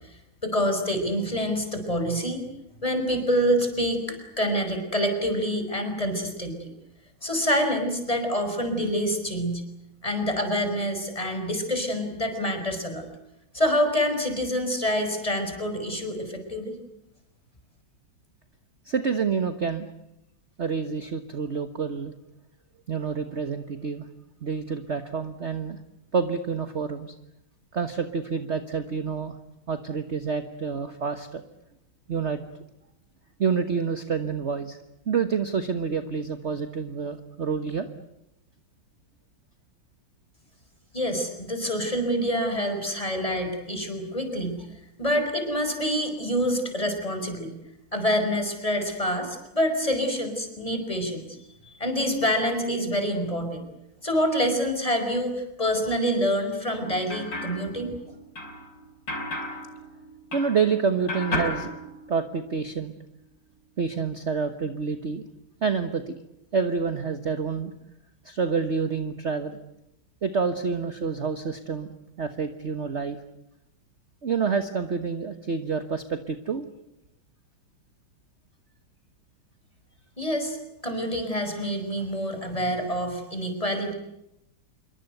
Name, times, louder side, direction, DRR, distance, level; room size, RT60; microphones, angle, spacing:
voice 1, 0.4-2.4 2.8-4.0 4.4-6.7 7.2-9.6 10.0-13.0 13.5-16.8 40.9-44.6 45.0-47.5 47.9-51.3 51.6-53.7 54.0-57.9 80.2-83.9, equal, 15° left, 6 dB, 5.5 m, -26 dB
voice 2, 18.9-19.9 20.6-22.1 22.9-24.0 24.4-25.8 26.1-27.1 27.7-29.3 29.7-31.4 32.1-32.4 33.4-34.8 35.1-37.9 60.3-61.7 62.1-62.9 63.8-65.2 65.6-66.1 66.5-67.7 68.2-69.6 70.2-73.2 74.2-76.7, right 5 dB, 40° right, 9 dB, 1.5 m, -28 dB
sound 1, 56.7-60.8 61.1-62.6, left 1 dB, 60° left, 5.9 m, -34 dB
26.5 x 24.0 x 8.0 m, 0.85 s
omnidirectional pair, 2.2 m